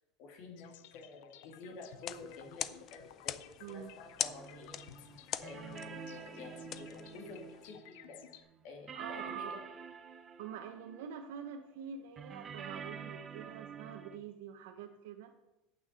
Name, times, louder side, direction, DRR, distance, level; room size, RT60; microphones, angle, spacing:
voice 1, 0.2-4.8 5.4-9.5, left 3 dB, 55° left, 2 dB, 2.6 m, -50 dB
sound 1, 0.6-8.4, left 12 dB, 70° left, 0.7 m, -56 dB
sound 2, 1.9-7.7, left 11 dB, 35° left, 0.4 m, -43 dB
voice 2, 3.6-3.9 8.9-9.6 10.4-15.3, right 7 dB, 75° right, 3 dB, 1.0 m, -45 dB
sound 3, 4.2-8.6 8.9-11.7 12.2-14.2, right 6 dB, 25° right, 0.6 m, -48 dB
8.6 x 6.2 x 7.5 m, 0.94 s
supercardioid pair, 150°, 0 cm